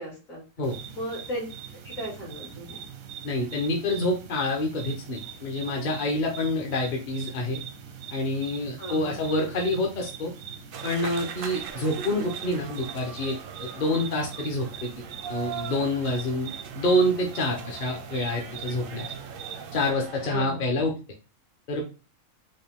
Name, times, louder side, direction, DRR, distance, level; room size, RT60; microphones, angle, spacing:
voice 1, 0.0-0.4 0.9-1.5 1.8-2.8 8.8-9.2 20.3-20.6, equal, 70° left, -3 dB, 2.6 m, -35 dB
sound 1, 0.6-19.9, right 8 dB, 85° right, 1.2 m, -42 dB
voice 2, 3.2-7.6 8.1-10.3 10.8-15.0 15.3-19.1 19.7-20.9 21.7-21.8, left 1 dB, 45° left, 0 dB, 0.8 m, -27 dB
sound 2, 10.7-20.4, right 7 dB, 60° right, 0.6 m, -41 dB
5.3 x 2.2 x 3.4 m, 0.33 s
omnidirectional pair, 1.4 m